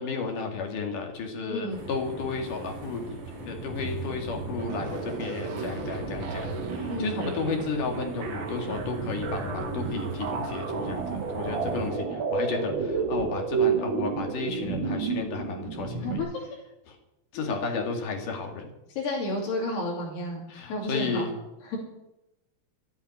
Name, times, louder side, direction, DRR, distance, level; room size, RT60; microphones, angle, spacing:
voice 1, 0.0-3.2 3.4-16.2 16.9-17.0 17.3-18.7 20.5-21.3, left 4 dB, 55° left, 3 dB, 3.4 m, -33 dB
voice 2, 1.5-1.8 6.9-7.3 16.0-16.4 17.3-17.9 18.9-20.4 20.7-21.2 21.6-21.8, left 2 dB, 80° left, -2 dB, 4.9 m, -32 dB
sound 1, 1.7-11.9, right 3 dB, 45° right, 4.6 m, -38 dB
sound 2, 4.6-16.2, right 5 dB, 80° right, 1.0 m, -31 dB
13.5 x 8.8 x 9.5 m, 0.91 s
omnidirectional pair, 4.7 m